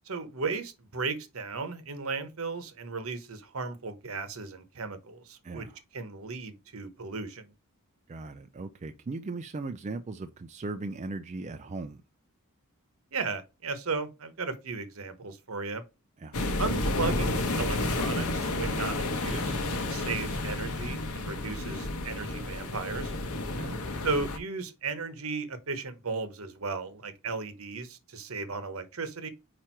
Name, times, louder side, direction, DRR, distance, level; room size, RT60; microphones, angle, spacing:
voice 1, 0.1-5.7 5.9-7.5 13.1-15.8 16.6-19.6 19.9-23.1 24.0-29.3, right 4 dB, 65° right, 1.0 m, -35 dB
voice 2, 5.4-5.8 8.1-12.0 16.2-16.4 23.5-23.8, right 3 dB, 30° right, 0.4 m, -38 dB
sound 1, 16.3-24.4, left 2 dB, 75° left, 1.0 m, -31 dB
4.9 x 4.4 x 4.5 m
head